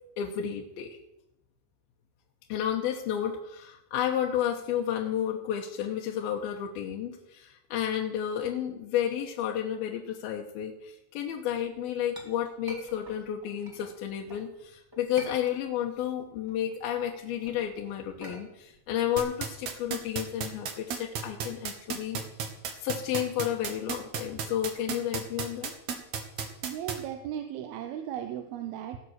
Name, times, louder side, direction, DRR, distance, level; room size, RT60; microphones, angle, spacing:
voice 1, 0.2-1.0 2.5-22.2 22.8-25.7, left 10 dB, 80° left, 1 dB, 2.7 m, -31 dB
Chink clink, 11.8-14.5 14.9-16.0 16.3-20.4, equal, 10° right, 1.0 m, -46 dB
sound 1, 19.2-26.9, right 7 dB, 60° right, 2.1 m, -32 dB
voice 2, 26.6-29.0, right 10 dB, 80° right, 6 dB, 2.7 m, -36 dB
17.5 x 7.4 x 6.4 m, 0.87 s
omnidirectional pair, 4.5 m